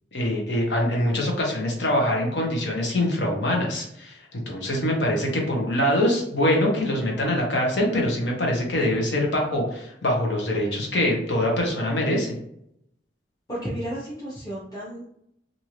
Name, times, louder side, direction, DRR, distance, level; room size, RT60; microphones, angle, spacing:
voice 1, 0.1-12.3, left 1 dB, 70° left, 0 dB, 0.9 m, -24 dB
voice 2, 13.5-15.1, equal, 20° left, -8 dB, 0.8 m, -32 dB
2.6 x 2.6 x 3.0 m, 0.74 s
head